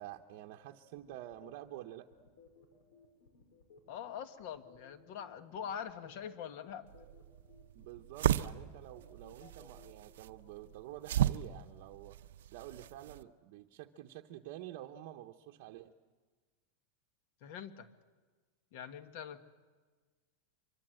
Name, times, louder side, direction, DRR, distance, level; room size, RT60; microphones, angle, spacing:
voice 1, 0.0-2.1 7.7-12.2 12.5-15.9, right 13 dB, 45° right, 2 dB, 0.9 m, -49 dB
sound 1, 0.9-9.9, left 4 dB, 80° left, 5.0 m, -61 dB
voice 2, 3.9-6.9 17.4-17.9 18.7-19.5, left 8 dB, 45° left, 11 dB, 1.5 m, -44 dB
sound 2, 6.9-13.2, right 11 dB, 85° right, 0.7 m, -36 dB
24.5 x 23.0 x 7.8 m, 1.4 s
supercardioid pair, 175°, 0 cm